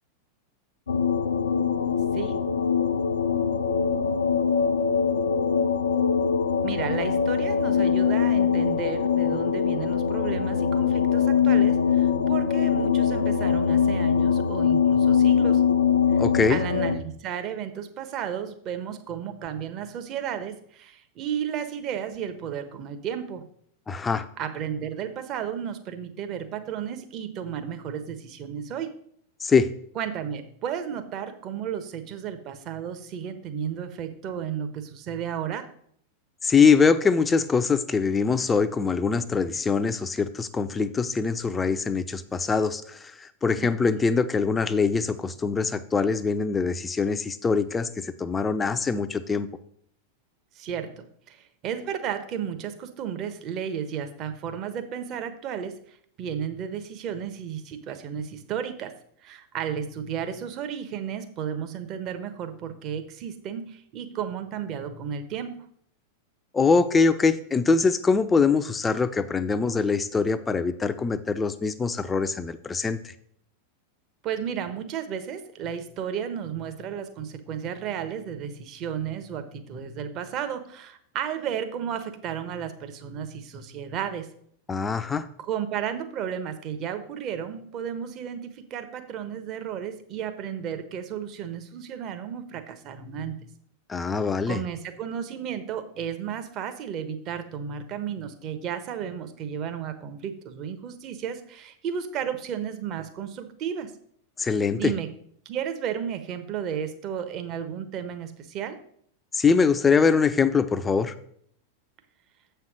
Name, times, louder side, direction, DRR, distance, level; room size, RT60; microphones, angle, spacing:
sound 1, 0.9-17.0, left 7 dB, 70° left, 0.7 m, -22 dB
voice 1, 6.6-15.6 16.1-16.2 16.5-23.5 24.4-28.9 29.9-35.7 43.6-43.7 44.0-44.1 50.5-58.9 59.2-65.6 74.2-84.3 85.4-93.4 94.5-103.9 104.8-105.1 105.4-108.8, right 8 dB, 35° right, 9 dB, 1.1 m, -33 dB
voice 2, 16.2-16.6 23.9-24.3 29.4-29.7 36.4-49.5 66.5-73.1 84.7-85.3 93.9-94.6 104.4-104.9 109.3-111.1, left 5 dB, 15° left, 12 dB, 0.6 m, -23 dB
7.7 x 5.7 x 6.2 m, 0.65 s
figure-of-eight pair, 90°, 0 cm